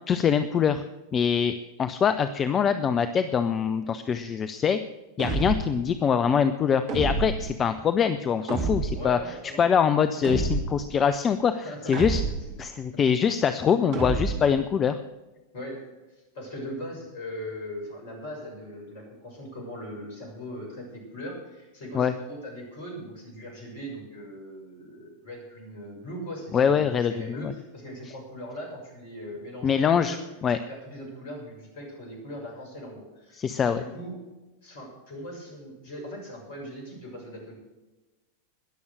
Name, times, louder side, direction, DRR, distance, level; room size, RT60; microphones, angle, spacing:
voice 1, 0.1-0.8 1.1-1.5 1.8-4.8 5.2-9.2 9.6-12.2 12.6-15.0 21.9-22.1 26.5-27.5 29.6-30.2 30.4-30.6 33.3-33.8, left 7 dB, 25° left, 11 dB, 0.6 m, -24 dB
sound 1, 5.2-5.8 6.9-7.6 8.5-9.1 10.2-10.9 11.9-12.6 13.9-14.6, right 4 dB, 40° right, 2.2 m, -29 dB
voice 2, 8.9-9.6 11.5-12.1 12.9-13.0 15.5-15.8 16.3-30.2 30.6-34.2 34.6-37.6, equal, 50° left, 0 dB, 6.6 m, -40 dB
21.0 x 7.2 x 6.4 m, 1.1 s
figure-of-eight pair, 90°, 0 cm